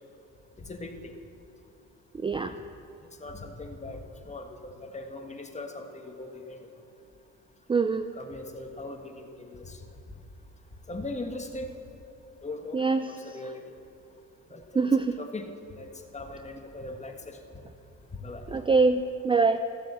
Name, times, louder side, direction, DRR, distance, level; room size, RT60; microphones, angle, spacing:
voice 1, 0.6-1.1 3.2-6.7 8.1-9.8 10.9-11.7 12.4-13.6 14.5-14.9 15.2-15.9 16.1-17.4 18.2-18.5, left 2 dB, 25° left, 4 dB, 1.6 m, -40 dB
voice 2, 2.2-2.5 7.7-8.1 12.7-13.1 14.8-15.2 18.5-19.6, right 4 dB, 15° right, 10 dB, 0.4 m, -24 dB
15.0 x 7.5 x 7.3 m, 2.9 s
cardioid pair, 90°, 30 cm